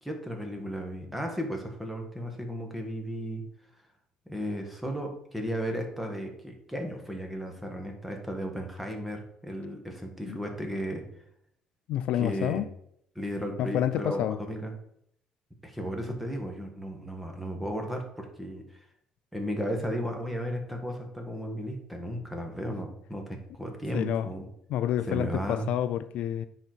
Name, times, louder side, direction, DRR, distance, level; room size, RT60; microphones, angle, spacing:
voice 1, 0.0-3.4 4.3-11.1 12.1-12.6 13.1-14.7 15.6-18.6 19.3-24.4 25.1-25.7, equal, 5° right, 1.5 m, -34 dB
voice 2, 11.9-12.7 13.6-14.4 23.9-24.3 24.7-26.5, left 11 dB, 70° left, 0.4 m, -28 dB
9.7 x 4.1 x 4.5 m
cardioid pair, 120°, 2 cm